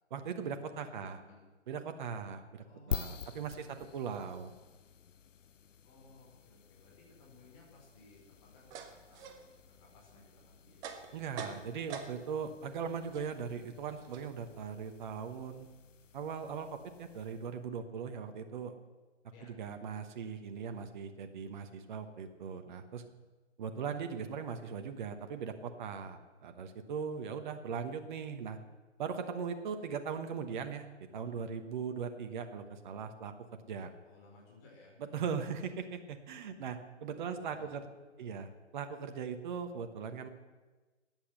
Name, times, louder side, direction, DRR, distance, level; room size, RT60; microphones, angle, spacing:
voice 1, 0.1-1.2 1.7-4.5 11.1-15.7 16.1-18.7 19.6-23.0 23.6-28.6 29.0-33.3 33.7-33.9 35.0-37.9 38.2-40.3, right 6 dB, 40° right, 7 dB, 1.1 m, -39 dB
voice 2, 0.7-1.5 2.6-4.0 5.8-9.4 9.7-10.8 19.3-19.6 34.0-35.0 37.2-37.8 38.2-38.3, left 2 dB, 30° left, -3 dB, 4.5 m, -60 dB
sound 1, 2.9-17.6, left 7 dB, 90° left, 0.6 m, -48 dB
sound 2, 7.9-12.5 12.8-15.7, right 6 dB, 10° right, 0.6 m, -48 dB
13.0 x 9.1 x 8.0 m, 1.3 s
figure-of-eight pair, 135°, 37 cm